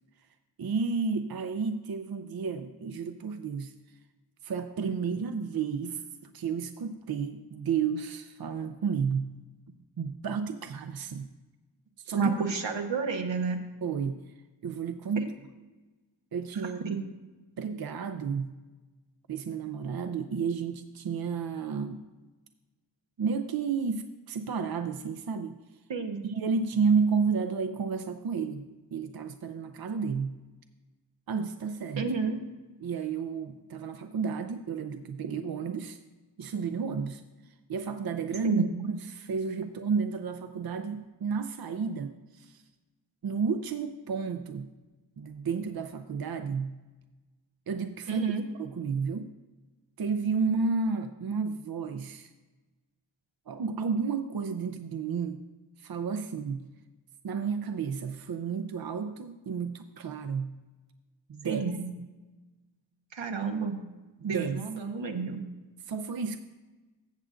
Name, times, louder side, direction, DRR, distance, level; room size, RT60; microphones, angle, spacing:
voice 1, 0.6-3.7 4.4-6.0 6.3-9.4 10.0-11.3 12.0-12.2 13.8-14.2 14.6-15.3 16.3-16.9 17.6-18.6 19.3-22.0 23.2-25.6 26.2-28.6 28.9-30.4 31.3-32.1 32.8-36.0 36.4-42.6 43.2-44.7 45.2-46.8 47.7-48.3 48.6-49.3 50.0-52.3 53.5-55.4 55.8-56.7 57.2-60.6 61.3-61.6 64.2-64.6 65.8-66.4, right 5 dB, 55° right, 8 dB, 0.6 m, -31 dB
voice 2, 12.1-13.6 16.8-17.0 25.9-26.2 32.0-32.4 38.4-38.7 48.1-48.4 61.4-61.8 63.1-63.8 64.2-65.4, right 5 dB, 80° right, 4 dB, 1.1 m, -30 dB
14.5 x 7.6 x 2.5 m, 1.2 s
wide cardioid pair, 50°, 44 cm